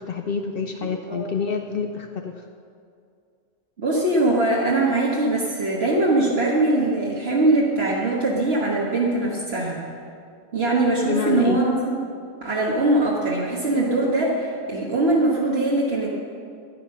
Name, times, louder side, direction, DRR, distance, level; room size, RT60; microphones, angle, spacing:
voice 1, 0.0-2.5 11.0-11.6, left 5 dB, 60° left, 5 dB, 0.8 m, -27 dB
voice 2, 0.8-1.2 3.8-9.8 10.5-12.0 12.4-16.1, right 2 dB, 65° right, -4 dB, 1.7 m, -22 dB
13.0 x 10.0 x 5.7 m, 2.4 s
omnidirectional pair, 1.1 m